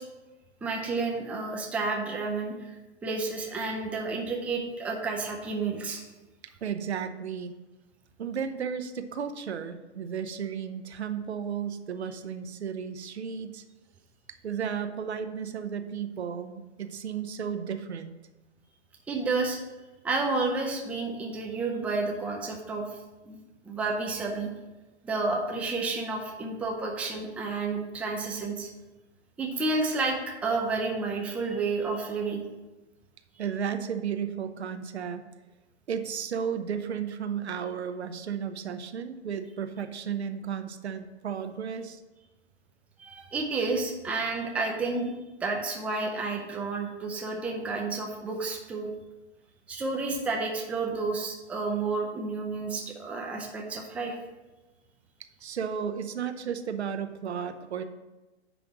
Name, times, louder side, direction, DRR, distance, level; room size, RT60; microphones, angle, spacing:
voice 1, 0.6-2.6 3.0-6.0 19.1-19.6 20.0-22.8 23.3-23.4 23.7-24.5 25.0-28.7 29.4-32.4 43.0-48.9 49.7-54.2, right 3 dB, 5° right, 0 dB, 0.5 m, -30 dB
voice 2, 6.6-7.5 8.2-13.6 14.4-18.1 33.4-35.2 35.9-42.0 55.4-57.8, right 7 dB, 70° right, 8 dB, 0.8 m, -33 dB
10.0 x 3.4 x 6.1 m, 1.1 s
figure-of-eight pair, 120°, 34 cm